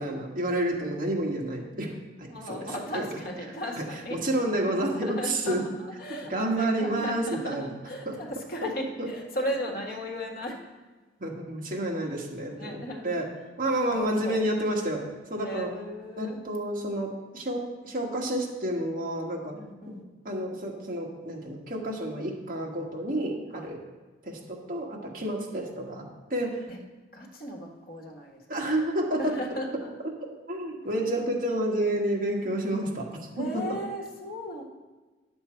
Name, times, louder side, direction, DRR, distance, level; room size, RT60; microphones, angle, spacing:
voice 1, 0.0-3.1 3.7-5.6 6.3-7.7 8.0-8.2 9.0-9.1 11.2-13.3 13.6-15.0 15.3-15.7 16.2-19.6 20.2-23.8 24.2-26.7 28.5-29.3 30.5-33.6, right 1 dB, 45° right, -1 dB, 1.7 m, -30 dB
voice 2, 2.3-4.2 4.9-10.6 12.6-13.2 13.9-14.4 15.4-16.4 19.5-20.0 23.5-23.7 26.7-26.8 27.1-28.4 29.2-29.9 33.4-34.6, equal, 50° left, 1 dB, 1.3 m, -36 dB
10.5 x 7.2 x 4.5 m, 1.3 s
head